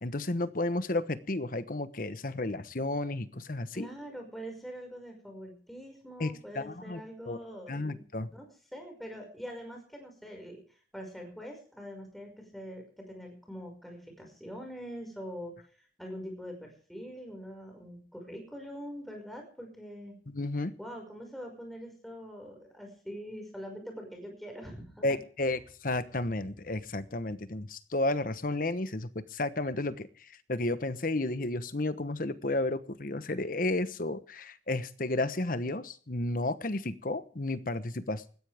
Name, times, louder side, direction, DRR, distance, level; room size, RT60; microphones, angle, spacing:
voice 1, 0.0-3.9 6.2-7.0 7.3-7.4 7.7-8.3 20.3-20.7 25.0-38.4, left 2 dB, 50° left, 13 dB, 1.1 m, -32 dB
voice 2, 3.7-8.0 8.3-8.5 8.7-20.2 20.8-25.2, equal, ahead, 2 dB, 5.5 m, -44 dB
20.0 x 15.5 x 3.5 m, 0.42 s
head